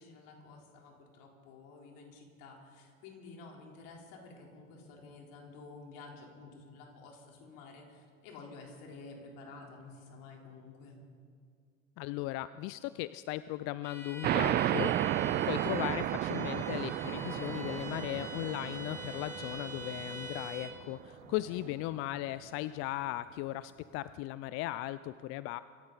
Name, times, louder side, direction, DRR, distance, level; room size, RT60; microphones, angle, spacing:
voice 1, 0.0-11.0 21.2-21.7, left 3 dB, 55° left, 0 dB, 4.0 m, -51 dB
voice 2, 12.0-25.6, left 16 dB, 35° left, 16 dB, 0.4 m, -37 dB
Bowed string instrument, 13.8-20.8, equal, 5° left, 2.0 m, -45 dB
sound 1, 14.2-21.4, right 12 dB, 25° right, 0.4 m, -33 dB
25.5 x 13.5 x 4.1 m, 2.3 s
hypercardioid pair, 85°, 39 cm